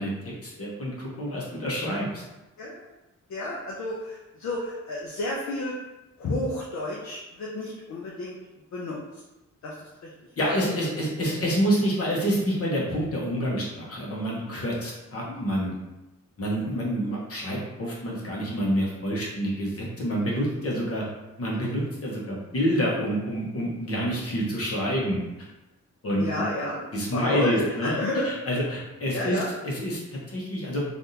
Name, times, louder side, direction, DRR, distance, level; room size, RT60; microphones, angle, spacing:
voice 1, 0.0-2.2 10.4-15.7 16.4-21.0 21.4-25.5 26.0-26.4 26.9-28.0 28.2-29.4 29.6-30.8, equal, 50° left, -3 dB, 1.1 m, -28 dB
voice 2, 3.3-5.7 6.2-8.4 8.7-9.0 9.6-9.7 10.4-10.8 15.3-15.4 16.6-16.8 26.2-26.8 27.1-28.3 29.1-29.5, left 1 dB, 65° left, -4 dB, 0.6 m, -30 dB
3.4 x 2.5 x 2.8 m, 1.0 s
cardioid pair, 95°, 30 cm